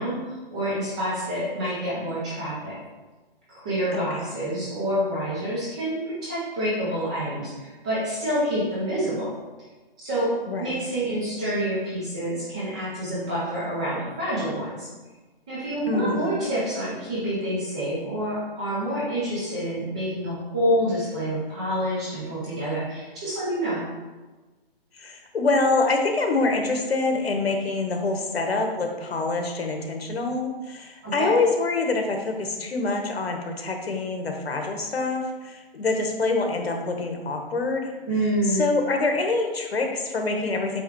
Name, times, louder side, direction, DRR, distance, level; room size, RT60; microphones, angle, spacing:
voice 1, 0.0-2.8 3.5-9.3 10.0-14.9 15.5-23.8 31.0-31.4 38.1-38.6, equal, 5° right, -9 dB, 0.5 m, -27 dB
voice 2, 3.9-4.2 10.5-10.8 15.9-16.3 24.9-37.9 38.5-40.8, left 3 dB, 80° left, 3 dB, 1.4 m, -25 dB
8.4 x 3.0 x 4.7 m, 1.2 s
hypercardioid pair, 165°, 30 cm